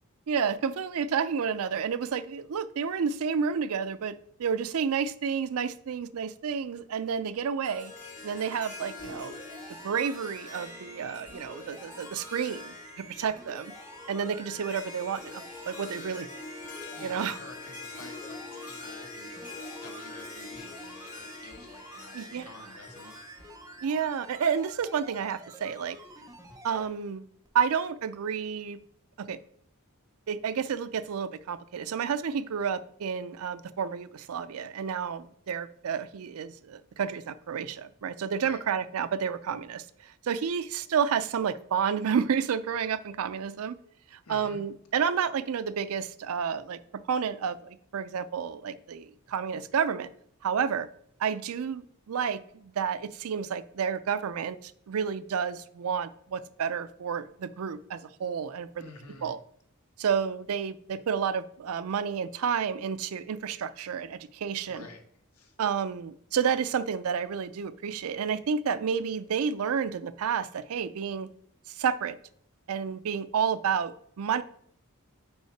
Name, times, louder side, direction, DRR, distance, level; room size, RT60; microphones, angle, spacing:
voice 1, 0.3-7.9 8.2-9.3 9.8-13.7 14.1-16.4 17.0-17.4 22.1-22.5 23.8-26.0 26.6-27.2 27.5-28.8 29.2-29.4 30.3-43.8 44.1-46.8 47.1-50.1 50.4-50.9 51.2-58.7 59.2-59.4 60.0-64.9 65.6-71.3 71.7-72.2 72.7-74.4, right 7 dB, 75° right, 13 dB, 0.4 m, -30 dB
Harp, 7.6-24.9, left 3 dB, 35° left, 1.7 m, -45 dB
sound 1, 9.0-26.9 27.4-27.5, right 2 dB, 15° right, 0.7 m, -49 dB
voice 2, 16.9-18.4 18.6-19.5 19.8-23.1 38.4-38.6 44.2-44.6 58.8-59.3 64.7-65.0 65.3-65.5, left 3 dB, 85° left, 4 dB, 1.2 m, -49 dB
5.4 x 4.8 x 4.5 m, 0.63 s
head